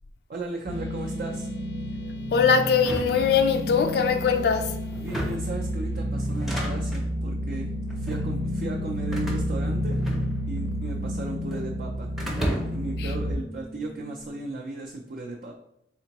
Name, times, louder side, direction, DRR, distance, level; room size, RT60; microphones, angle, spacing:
voice 1, 0.3-1.5 5.0-10.0 10.5-12.1 12.4-15.5, right 2 dB, 50° right, 0.4 m, -36 dB
sound 1, 0.7-14.5, equal, 90° left, 0.7 m, -40 dB
sound 2, 0.7-13.3, equal, 90° right, 0.9 m, -31 dB
voice 2, 2.3-4.8 13.0-13.1, left 6 dB, 60° left, 0.3 m, -22 dB
sound 3, 2.8-3.9 4.9-5.6 6.3-7.1 7.9-8.3 9.1-10.6 10.9-11.7 12.2-12.9, equal, ahead, 0.5 m, -34 dB
3.6 x 3.5 x 2.9 m
head